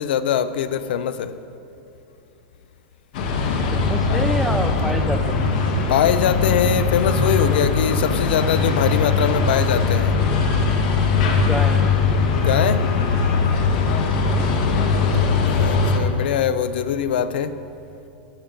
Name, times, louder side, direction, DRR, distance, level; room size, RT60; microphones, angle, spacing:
voice 1, 0.0-1.4 5.9-10.2 12.3-12.9 15.5-17.6, left 9 dB, 65° left, 14 dB, 0.5 m, -22 dB
sound 1, 3.1-16.0, left 4 dB, 45° left, 1.1 m, -20 dB
voice 2, 3.7-5.5 9.9-10.1 11.3-11.9 14.3-14.6, right 1 dB, ahead, 6 dB, 0.3 m, -28 dB
13.0 x 8.9 x 5.1 m, 2.9 s
supercardioid pair, 180°, 6 cm